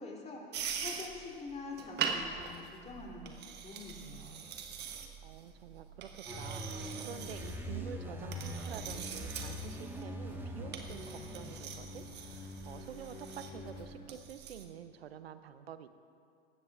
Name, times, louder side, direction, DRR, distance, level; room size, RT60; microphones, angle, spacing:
voice 1, 0.0-4.4, left 3 dB, 20° left, -2 dB, 3.0 m, -46 dB
sound 1, 0.5-14.6, right 7 dB, 35° right, 1.3 m, -43 dB
voice 2, 5.2-15.9, right 9 dB, 75° right, 12 dB, 0.8 m, -48 dB
sound 2, 6.2-11.6, right 1 dB, 5° right, 1.4 m, -44 dB
sound 3, 6.3-13.9, left 3 dB, 50° left, 3.5 m, -47 dB
18.5 x 16.0 x 2.4 m, 2.5 s
hypercardioid pair, 90°, 30 cm